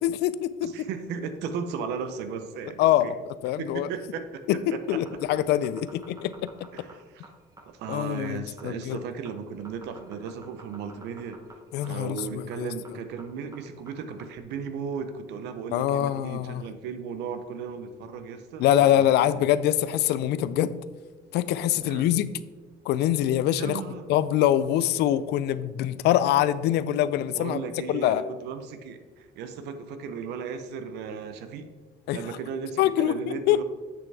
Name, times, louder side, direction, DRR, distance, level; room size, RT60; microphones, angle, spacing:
voice 1, 0.0-0.7 2.8-3.1 3.4-3.9 4.5-6.7 7.9-9.0 11.7-12.7 15.7-16.6 18.6-20.7 21.3-22.3 22.9-23.8 24.1-27.6 27.9-28.2 32.1-32.2 32.8-33.6, left 12 dB, 80° left, 15 dB, 0.4 m, -24 dB
voice 2, 0.6-3.1 3.6-4.4 4.7-5.0 6.7-7.3 7.7-11.4 11.9-19.5 21.8-22.1 23.6-24.0 27.3-31.7 32.1-33.6, right 6 dB, 85° right, 9 dB, 0.8 m, -36 dB
sound 1, 4.8-14.4, right 2 dB, 20° right, 1.0 m, -50 dB
8.0 x 6.5 x 3.4 m, 1.4 s
cardioid pair, 110°, 17 cm